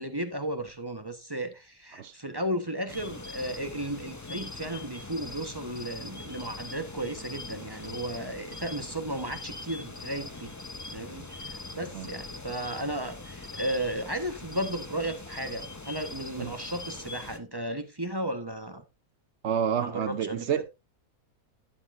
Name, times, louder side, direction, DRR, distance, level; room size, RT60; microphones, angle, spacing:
voice 1, 0.0-10.5 10.9-18.8 19.8-20.6, right 1 dB, 15° right, 1.0 m, -34 dB
sound 1, 2.9-17.4, left 3 dB, 20° left, 0.4 m, -42 dB
voice 2, 19.4-20.7, right 8 dB, 55° right, 0.8 m, -29 dB
12.0 x 9.7 x 2.6 m
omnidirectional pair, 1.6 m